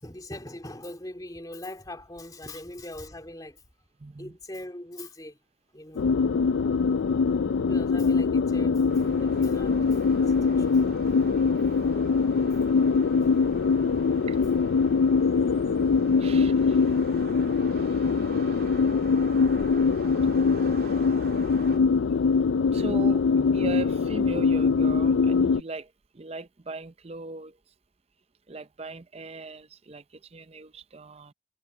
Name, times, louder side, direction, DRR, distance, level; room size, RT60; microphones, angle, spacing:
voice 1, 0.0-3.6 4.2-5.4 5.7-6.1 7.6-10.8, left 1 dB, 20° left, 2.9 m, -41 dB
voice 2, 4.0-4.4 12.2-12.6 14.3-14.4 16.2-16.9 22.7-27.6 28.5-31.3, right 3 dB, 30° right, 0.6 m, -39 dB
sound 1, 6.0-25.6, left 5 dB, 70° left, 0.4 m, -23 dB
sound 2, 8.9-21.8, right 3 dB, 50° right, 2.3 m, -46 dB
Trumpet, 17.7-22.5, right 3 dB, 70° right, 7.0 m, -56 dB
head